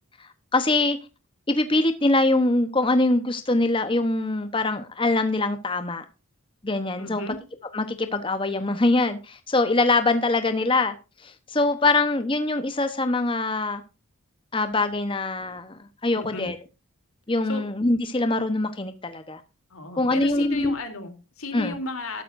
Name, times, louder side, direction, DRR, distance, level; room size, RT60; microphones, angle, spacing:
voice 1, 0.2-1.0 1.5-6.0 6.6-7.2 7.7-13.8 14.5-16.5 17.3-19.4 20.0-20.8 21.5-21.8, left 2 dB, 25° left, 0.9 m, -23 dB
voice 2, 7.0-7.4 16.1-16.5 17.5-17.6 19.7-22.2, left 3 dB, 85° left, 3.1 m, -34 dB
13.0 x 12.5 x 2.6 m
head